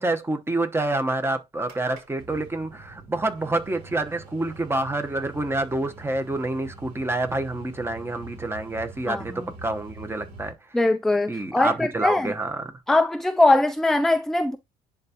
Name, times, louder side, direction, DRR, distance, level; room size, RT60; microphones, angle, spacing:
voice 1, 0.0-10.5 11.3-12.7, right 2 dB, 15° right, 1.0 m, -27 dB
sound 1, 1.6-10.5, right 2 dB, 65° right, 3.4 m, -44 dB
voice 2, 10.7-12.3 12.9-14.6, left 2 dB, ahead, 0.4 m, -21 dB
10.5 x 3.6 x 2.9 m
cardioid pair, 110°, 17 cm